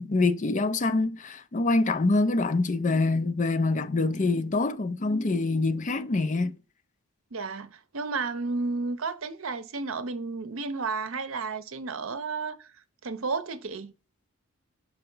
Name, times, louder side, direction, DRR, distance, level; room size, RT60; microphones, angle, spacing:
voice 1, 0.0-6.6, left 3 dB, 35° left, 0.5 m, -25 dB
voice 2, 7.3-12.7 13.0-13.9, right 4 dB, 65° right, 0.7 m, -32 dB
5.7 x 4.2 x 5.4 m
head